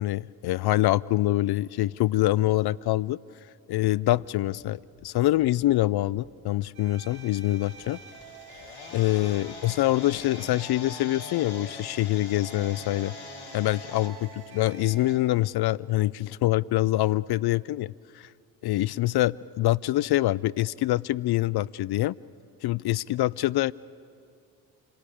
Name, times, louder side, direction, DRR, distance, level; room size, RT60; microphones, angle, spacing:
voice 1, 0.0-3.2 3.7-8.0 8.9-13.1 13.5-18.3 18.6-22.1 22.6-23.7, left 16 dB, 55° left, 22 dB, 0.5 m, -25 dB
Breathing, 4.9-5.1 5.3-6.7 7.0-7.9 8.2-9.1 9.3-10.3, left 1 dB, 30° left, 6.4 m, -57 dB
sound 1, 6.7-15.1, right 6 dB, 90° right, 3.2 m, -47 dB
sound 2, 7.1-14.1, left 5 dB, 75° left, 2.4 m, -44 dB
28.5 x 17.0 x 8.6 m, 2.3 s
hypercardioid pair, 45°, 48 cm